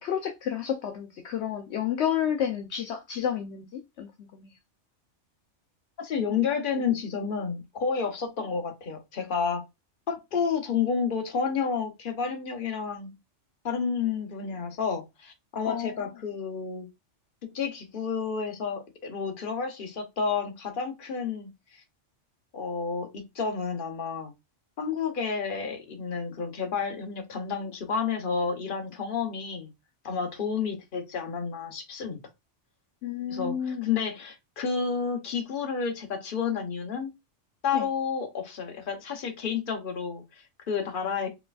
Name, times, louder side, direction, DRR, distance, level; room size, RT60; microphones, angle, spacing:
voice 1, 0.0-4.5 15.6-16.1 33.0-33.9 37.7-37.8, left 9 dB, 70° left, 0.9 m, -31 dB
voice 2, 6.0-9.6 10.1-13.1 13.6-16.9 17.4-21.8 22.5-24.3 24.8-29.7 30.0-32.2 33.3-37.1 37.6-41.3, left 6 dB, 50° left, 1.0 m, -30 dB
4.4 x 3.3 x 2.3 m
omnidirectional pair, 1.2 m